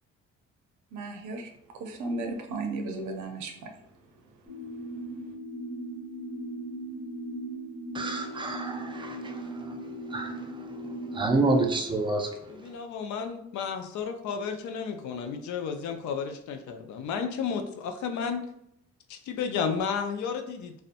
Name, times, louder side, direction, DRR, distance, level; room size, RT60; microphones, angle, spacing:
voice 1, 0.9-1.5 1.7-3.7 4.7-4.8, right 3 dB, 80° right, 3 dB, 0.6 m, -35 dB
sound 1, 4.5-11.2, right 1 dB, 20° left, 0.9 m, -38 dB
voice 2, 7.9-9.4 10.1-10.3 11.1-12.3, right 2 dB, 15° right, 3 dB, 0.4 m, -27 dB
voice 3, 12.5-18.4 19.1-20.7, left 6 dB, 70° left, 6 dB, 0.4 m, -32 dB
2.7 x 2.1 x 2.5 m, 0.75 s
cardioid pair, 90°, 30 cm